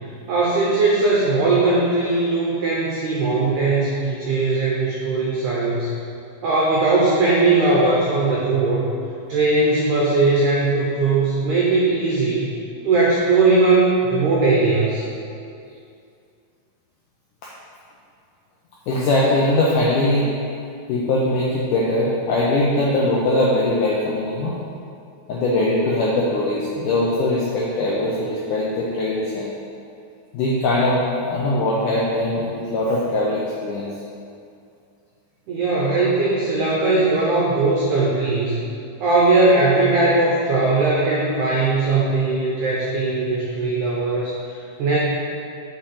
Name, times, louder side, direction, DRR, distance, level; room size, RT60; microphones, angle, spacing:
voice 1, 0.3-5.9 6.4-8.9 9.3-12.5 12.8-15.0 35.5-38.6 39.0-44.3 44.8-45.0, right 3 dB, 90° right, -5 dB, 1.7 m, -19 dB
voice 2, 18.9-20.3 20.9-24.6 25.3-29.5 30.3-33.9, left 1 dB, 90° left, -5 dB, 1.8 m, -21 dB
7.2 x 4.3 x 4.8 m, 2.5 s
omnidirectional pair, 4.6 m